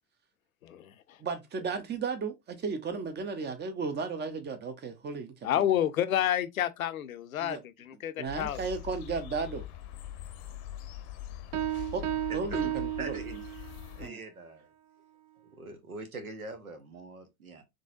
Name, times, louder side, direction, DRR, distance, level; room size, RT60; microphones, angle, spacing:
voice 1, 0.6-1.2 5.4-8.6, left 11 dB, 75° left, 0.5 m, -30 dB
voice 2, 1.2-5.6 7.4-7.6 8.2-9.6 11.9-12.0 12.3-13.2 14.0-14.2, right 5 dB, 25° right, 0.8 m, -34 dB
sound 1, 8.3-14.1, left 12 dB, 45° left, 0.7 m, -43 dB
Piano, 11.5-13.9, right 14 dB, 65° right, 0.6 m, -34 dB
voice 3, 12.3-12.7 13.0-13.6 14.0-14.7 15.6-17.7, right 3 dB, 80° right, 0.9 m, -43 dB
3.8 x 3.2 x 2.4 m
figure-of-eight pair, 65°, 42 cm